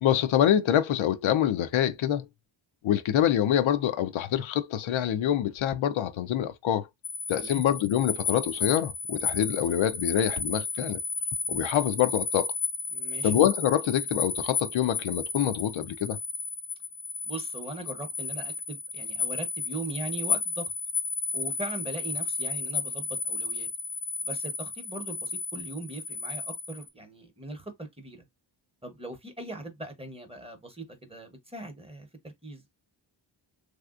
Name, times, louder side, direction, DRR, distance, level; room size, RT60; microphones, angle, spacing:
voice 1, 0.0-2.3 2.8-6.9 7.3-11.0 11.5-12.5 13.2-16.2, left 10 dB, 80° left, 0.6 m, -25 dB
sound 1, 7.0-26.9, left 5 dB, 30° left, 0.4 m, -33 dB
voice 2, 12.9-13.3 17.2-20.7 21.3-23.7 24.2-28.3 28.8-32.7, right 2 dB, 10° right, 0.8 m, -40 dB
3.4 x 2.7 x 2.4 m
wide cardioid pair, 140°, 47 cm